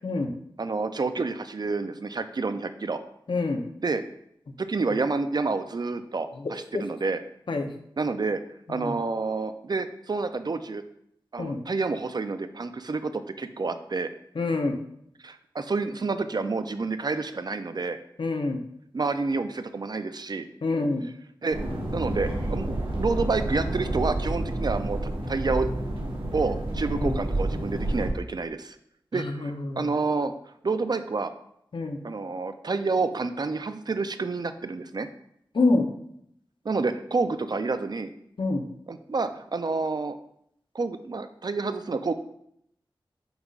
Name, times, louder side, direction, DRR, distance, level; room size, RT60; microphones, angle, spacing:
voice 1, 0.6-3.0 3.8-4.0 4.6-7.2 8.0-8.4 8.7-10.8 11.3-14.1 15.2-18.0 18.9-20.4 21.4-21.6 21.9-25.0 25.3-25.7 26.3-28.8 29.1-30.3 30.6-31.3 32.0-35.1 36.6-38.1 38.9-40.2 40.7-42.1, right 3 dB, 50° right, 10 dB, 0.5 m, -29 dB
voice 2, 3.3-3.6 6.4-6.5 7.5-7.7 8.7-8.9 11.4-11.6 14.4-14.8 18.2-18.6 20.6-21.1 26.9-27.2 29.1-29.9 31.7-32.0 35.5-35.8 38.4-38.6, left 3 dB, 70° left, 5 dB, 0.7 m, -26 dB
sound 1, 21.5-28.1, right 1 dB, 90° right, 1.5 m, -29 dB
8.0 x 5.2 x 2.4 m, 0.72 s
wide cardioid pair, 65°, 9 cm